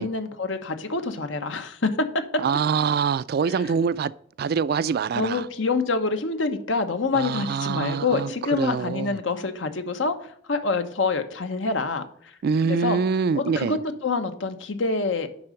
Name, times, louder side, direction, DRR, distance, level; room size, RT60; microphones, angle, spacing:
voice 1, 0.0-1.9 3.5-3.6 5.1-12.3 12.6-13.0 13.3-15.3, left 4 dB, 85° left, 1.0 m, -26 dB
voice 2, 2.4-4.1 4.4-5.5 7.1-9.2 12.4-13.8, right 6 dB, 55° right, 0.3 m, -25 dB
10.0 x 3.8 x 6.4 m
head